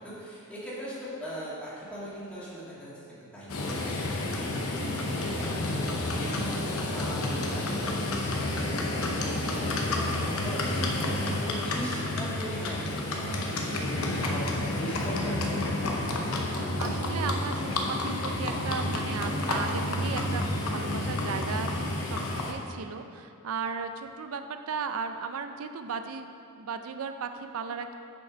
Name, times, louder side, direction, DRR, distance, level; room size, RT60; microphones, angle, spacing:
voice 1, 0.0-2.9 3.2-4.6 4.9-6.6 6.9-11.1 11.4-16.0, right 1 dB, 5° left, -9 dB, 1.8 m, -40 dB
Livestock farm animals working animals, 3.5-22.5, left 2 dB, 80° left, 0.8 m, -30 dB
voice 2, 4.8-5.4 10.0-10.5 13.6-13.9 16.5-26.3 26.6-27.9, right 5 dB, 80° right, 8 dB, 0.5 m, -36 dB
sound 1, 16.5-22.0, left 2 dB, 45° right, 1.2 m, -41 dB
6.6 x 5.2 x 5.0 m, 2.5 s
head